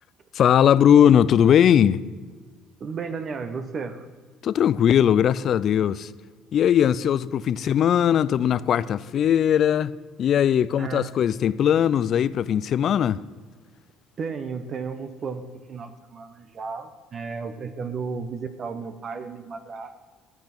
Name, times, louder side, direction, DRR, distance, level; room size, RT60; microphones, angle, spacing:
voice 1, 0.3-2.1 4.4-6.1 6.5-9.9 10.2-13.2, left 9 dB, 55° left, 0.5 m, -19 dB
voice 2, 2.8-4.1 10.8-11.1 14.2-20.0, right 5 dB, 45° right, 0.9 m, -33 dB
13.5 x 8.8 x 6.0 m
supercardioid pair, 85°, 0 cm